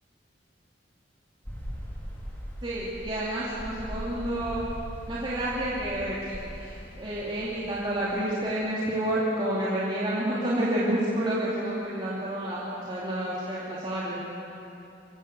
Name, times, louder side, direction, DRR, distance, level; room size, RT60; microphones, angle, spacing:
sound 1, 1.4-8.3, equal, 10° left, 4.2 m, -40 dB
voice 1, 2.6-4.7 5.1-14.3, right 1 dB, 30° right, -8 dB, 2.6 m, -29 dB
23.5 x 16.5 x 6.8 m, 2.8 s
head